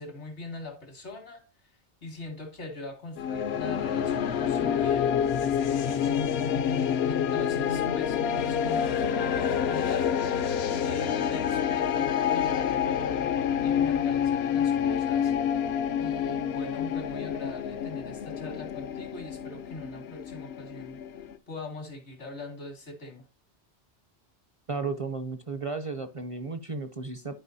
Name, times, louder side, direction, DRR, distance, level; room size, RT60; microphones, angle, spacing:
voice 1, 0.0-1.4 2.0-6.2 7.1-10.2 10.8-13.3 13.6-23.2, left 2 dB, 85° left, 2.5 m, -42 dB
sound 1, 3.2-21.4, left 8 dB, 70° left, 0.8 m, -28 dB
voice 2, 24.7-27.4, right 4 dB, 40° right, 0.5 m, -34 dB
11.0 x 4.9 x 2.7 m
omnidirectional pair, 1.1 m